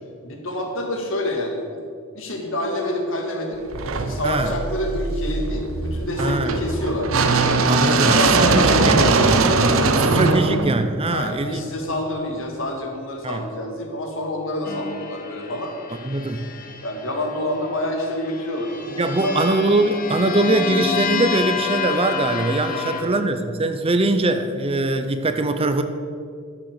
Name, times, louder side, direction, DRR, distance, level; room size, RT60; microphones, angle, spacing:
voice 1, 0.2-1.9 2.1-3.6 4.0-7.1 7.8-10.5 11.1-15.7 16.8-19.4 22.7-23.2, left 1 dB, 65° left, 1 dB, 2.0 m, -27 dB
sound 1, 3.7-11.8, right 3 dB, 75° right, 0.8 m, -20 dB
voice 2, 6.2-6.5 7.7-8.1 8.4-9.0 10.0-11.6 13.2-13.4 16.0-16.5 19.0-25.8, right 2 dB, 30° right, 9 dB, 0.6 m, -22 dB
sound 2, 14.6-17.4 18.2-23.0, left 6 dB, 40° left, 0.9 m, -29 dB
12.0 x 7.0 x 6.6 m, 2.2 s
head